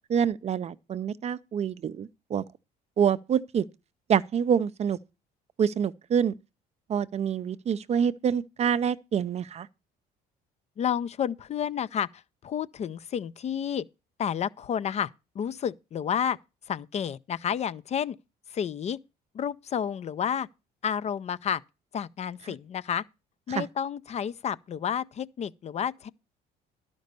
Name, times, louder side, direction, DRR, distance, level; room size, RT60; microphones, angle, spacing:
voice 1, 0.1-2.4 3.0-3.6 4.1-5.0 5.6-6.3 6.9-9.7 23.5-23.7, right 8 dB, 40° right, 0.5 m, -26 dB
voice 2, 10.8-13.9 14.2-16.4 16.7-18.2 18.5-19.0 19.3-20.5 20.8-21.6 21.9-23.0 23.5-26.1, left 8 dB, 40° left, 0.4 m, -30 dB
11.5 x 5.2 x 6.7 m
cardioid pair, 110°, 17 cm